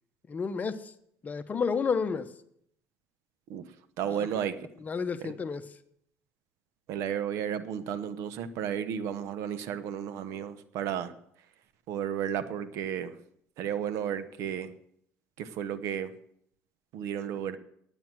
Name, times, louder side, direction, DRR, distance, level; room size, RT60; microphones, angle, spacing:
voice 1, 0.3-0.9 1.2-2.3 4.1-4.3 4.8-5.7, left 5 dB, 30° left, 10 dB, 0.9 m, -31 dB
voice 2, 4.0-4.6 5.2-5.3 6.9-11.1 11.9-13.2 13.6-14.7 15.4-16.1 16.9-17.6, right 9 dB, 75° right, 12 dB, 1.0 m, -33 dB
9.1 x 9.0 x 7.6 m, 0.70 s
supercardioid pair, 95°, 5 cm